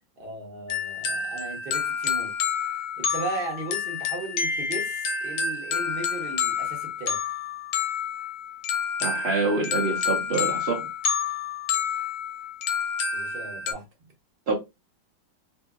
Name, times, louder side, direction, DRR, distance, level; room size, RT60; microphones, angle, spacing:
voice 1, 0.2-2.3 3.0-7.2 13.1-14.1, right 2 dB, 45° right, 0.7 m, -36 dB
sound 1, 0.7-13.7, left 6 dB, 70° left, 1.0 m, -29 dB
voice 2, 9.0-10.8 14.5-14.6, right 3 dB, 85° right, 0.5 m, -26 dB
2.7 x 2.7 x 2.3 m
omnidirectional pair, 2.0 m